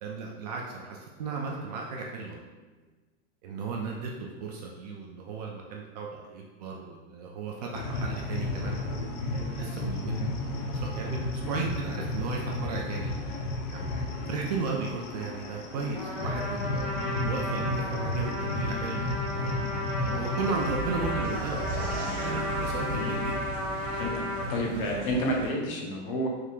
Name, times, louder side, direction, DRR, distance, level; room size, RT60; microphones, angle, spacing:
voice 1, 0.0-2.4 3.4-8.8 9.3-13.1 13.7-13.9 14.3-16.9 17.2-19.5 20.0-23.4 24.4-24.9, right 4 dB, 35° right, 0 dB, 0.4 m, -35 dB
sound 1, 7.7-20.8, left 2 dB, 85° left, 0.8 m, -33 dB
voice 2, 13.7-14.0 23.0-23.2 24.0-24.1 24.5-26.3, equal, 45° left, 0 dB, 0.9 m, -30 dB
Trumpet, 15.9-24.5, left 1 dB, ahead, 0.8 m, -34 dB
sound 2, 20.4-25.5, right 2 dB, 55° right, 1.2 m, -36 dB
4.6 x 3.5 x 2.4 m, 1.3 s
supercardioid pair, 165°, 37 cm